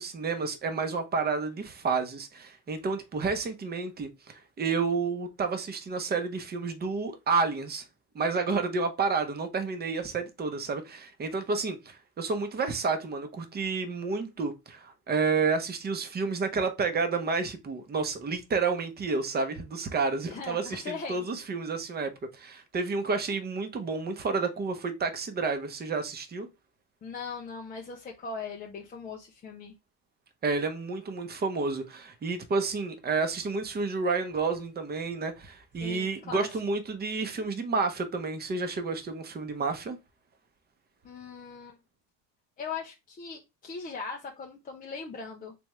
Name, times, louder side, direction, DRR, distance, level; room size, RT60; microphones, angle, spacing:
voice 1, 0.0-7.8 8.1-26.5 30.4-40.0, right 4 dB, 20° right, 0.7 m, -30 dB
voice 2, 20.3-21.3 27.0-29.7 35.8-36.5 41.0-41.8 42.6-45.5, left 5 dB, 20° left, 0.5 m, -39 dB
3.4 x 3.4 x 3.0 m
supercardioid pair, 110°, 50 cm